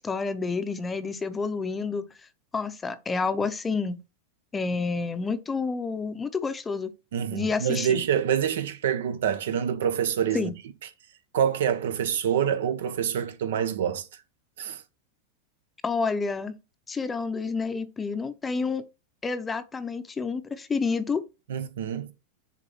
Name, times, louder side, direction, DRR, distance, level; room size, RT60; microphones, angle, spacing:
voice 1, 0.0-2.1 2.5-4.0 4.5-6.9 7.3-8.0 10.3-10.5 15.8-16.5 16.9-18.8 19.2-21.2, left 4 dB, 10° left, 0.6 m, -29 dB
voice 2, 7.1-10.5 11.3-14.0 14.6-14.8 21.5-22.1, right 9 dB, 85° right, 1.3 m, -26 dB
6.9 x 4.1 x 5.9 m
supercardioid pair, 160°, 0 cm